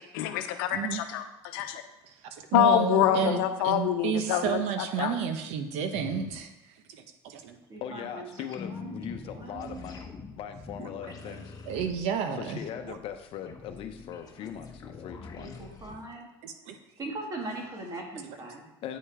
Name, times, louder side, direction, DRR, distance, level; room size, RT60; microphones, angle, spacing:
voice 1, 0.1-1.8 2.5-5.2, left 11 dB, 90° left, 8 dB, 0.8 m, -26 dB
voice 2, 2.3-6.5 6.9-7.6 10.8-10.9 11.3-11.4 11.7-12.6 12.9-13.0 16.4-16.7 18.2-18.4, right 7 dB, 70° right, 7 dB, 1.0 m, -31 dB
voice 3, 2.9-3.5 7.7-8.3 8.6-9.0 9.2-9.9 15.4-16.3 17.0-18.7, right 2 dB, 30° right, 0 dB, 2.3 m, -40 dB
voice 4, 5.9-6.3 7.8-11.5 12.4-15.6 18.8-19.0, left 9 dB, 55° left, 7 dB, 0.8 m, -40 dB
sound 1, 8.5-16.0, left 4 dB, 35° left, 1.1 m, -44 dB
8.9 x 5.5 x 4.9 m, 0.99 s
supercardioid pair, 115°, 11 cm